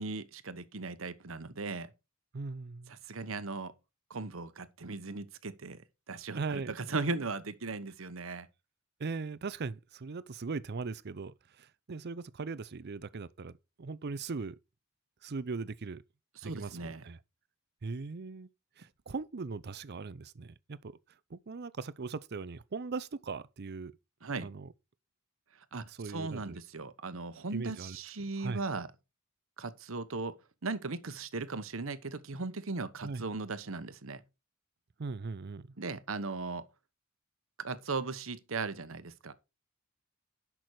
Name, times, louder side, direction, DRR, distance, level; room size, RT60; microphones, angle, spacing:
voice 1, 0.0-1.9 2.9-3.7 4.1-8.5 16.4-17.0 24.2-24.5 25.5-28.9 29.6-34.2 35.8-36.6 37.6-39.3, right 3 dB, 70° right, 1.0 m, -38 dB
voice 2, 2.3-2.9 6.3-6.8 9.0-14.6 15.2-16.0 16.4-17.2 17.8-18.5 18.8-21.0 21.3-23.9 24.4-24.7 25.7-26.6 27.5-28.0 28.4-28.6 33.0-33.2 35.0-35.7, right 4 dB, 50° right, 0.6 m, -39 dB
10.5 x 6.1 x 4.7 m
head